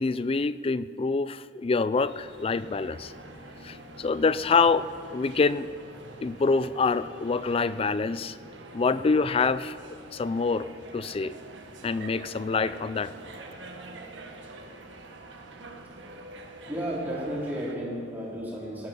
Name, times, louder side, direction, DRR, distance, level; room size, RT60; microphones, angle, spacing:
voice 1, 0.0-3.1 3.6-5.7 6.2-8.4 8.7-11.3 11.8-13.1, left 4 dB, 30° left, 16 dB, 0.3 m, -26 dB
sound 1, 1.9-17.7, right 2 dB, 65° right, 1.4 m, -45 dB
voice 2, 16.7-18.9, equal, 10° right, -7 dB, 4.0 m, -33 dB
17.5 x 12.5 x 5.3 m, 2.3 s
head